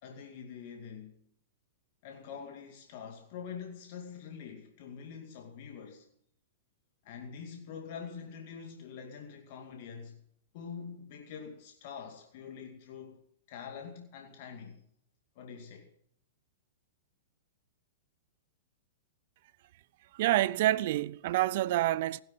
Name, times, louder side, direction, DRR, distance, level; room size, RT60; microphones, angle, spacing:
voice 1, 0.0-1.2 2.0-6.1 7.0-10.2 10.5-14.8 15.4-15.9, left 6 dB, 55° left, 2.3 m, -45 dB
voice 2, 20.1-22.2, right 15 dB, 55° right, 0.5 m, -27 dB
16.5 x 11.5 x 5.7 m
hypercardioid pair, 110°, 0 cm